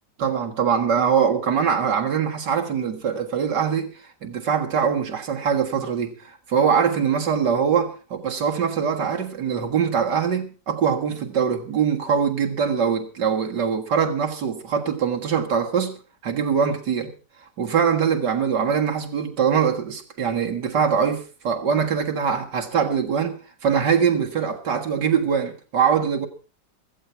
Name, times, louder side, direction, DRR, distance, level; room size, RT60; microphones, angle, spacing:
voice 1, 0.2-16.0 16.2-17.1 17.6-26.3, right 7 dB, 75° right, 2.3 m, -23 dB
16.0 x 14.0 x 4.4 m
omnidirectional pair, 1.9 m